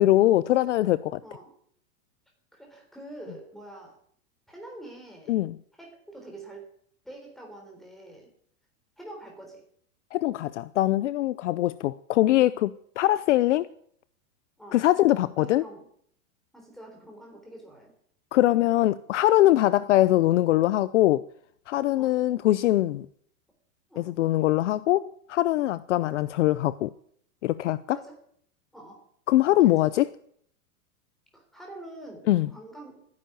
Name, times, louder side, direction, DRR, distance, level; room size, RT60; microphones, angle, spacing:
voice 1, 0.0-1.2 5.3-5.6 10.1-13.7 14.7-15.6 18.3-21.2 21.7-23.1 24.0-26.9 27.4-28.0 29.3-30.1 32.3-32.5, left 15 dB, 55° left, 0.6 m, -22 dB
voice 2, 1.2-1.5 2.5-4.0 4.5-5.4 5.8-6.6 7.0-8.3 9.0-9.6 14.6-14.8 15.4-15.9 16.5-17.9 21.9-22.2 23.9-24.2 27.9-28.2 28.7-29.1 29.6-29.7 31.3-33.1, right 1 dB, ahead, 3.7 m, -45 dB
13.0 x 10.5 x 9.2 m
supercardioid pair, 170°, 44 cm